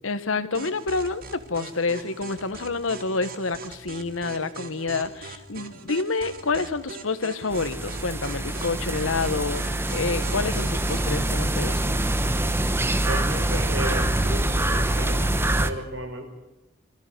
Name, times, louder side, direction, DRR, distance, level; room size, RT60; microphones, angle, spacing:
voice 1, 0.0-12.0, left 3 dB, 85° left, 13 dB, 1.2 m, -28 dB
sound 1, 0.5-11.2, right 4 dB, 45° right, 1.9 m, -41 dB
sound 2, 7.5-15.7, right 1 dB, 10° right, 1.0 m, -25 dB
voice 2, 13.0-16.2, right 1 dB, 65° right, 3 dB, 5.3 m, -34 dB
23.0 x 14.0 x 9.5 m, 0.98 s
head